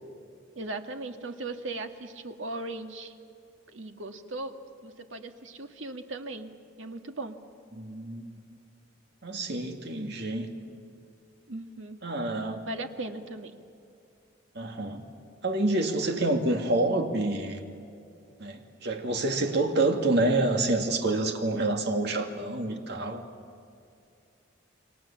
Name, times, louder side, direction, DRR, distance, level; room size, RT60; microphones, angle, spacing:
voice 1, 0.6-3.2 3.7-4.5 4.8-6.5 6.8-7.4 11.5-12.0 12.7-13.6, right 2 dB, 85° right, 6 dB, 1.7 m, -38 dB
voice 2, 7.8-8.3 9.2-10.5 12.0-12.6 14.5-15.0 15.4-17.6 18.4-23.2, right 2 dB, 60° right, 4 dB, 2.4 m, -27 dB
29.5 x 23.5 x 7.4 m, 2.5 s
head